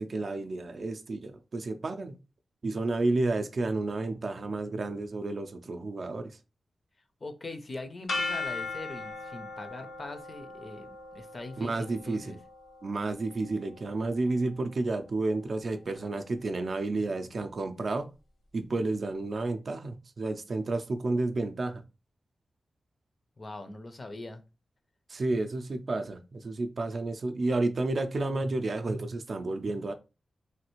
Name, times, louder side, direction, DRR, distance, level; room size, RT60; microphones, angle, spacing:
voice 1, 0.0-2.1 2.6-6.3 11.6-12.4 12.8-18.1 18.5-21.8 25.1-29.9, right 2 dB, 50° right, 0.4 m, -31 dB
voice 2, 7.2-12.4 23.4-24.4, left 2 dB, 35° left, 0.5 m, -42 dB
sound 1, 8.1-14.0, left 3 dB, 75° left, 0.9 m, -38 dB
3.2 x 2.4 x 2.9 m
wide cardioid pair, 110°, 0 cm